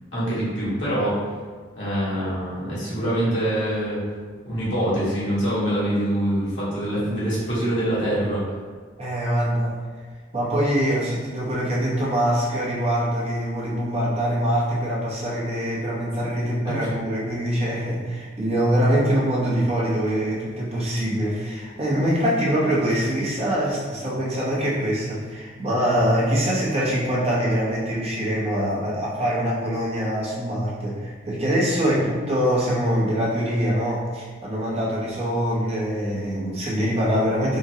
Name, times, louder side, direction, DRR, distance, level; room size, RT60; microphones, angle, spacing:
voice 1, 0.1-1.2 1.8-4.0 4.4-8.4 16.6-16.9, right 1 dB, 70° left, -9 dB, 1.3 m, -24 dB
voice 2, 9.0-9.8 10.3-37.6, equal, 35° right, -6 dB, 0.8 m, -24 dB
3.7 x 2.1 x 2.7 m, 1.5 s
head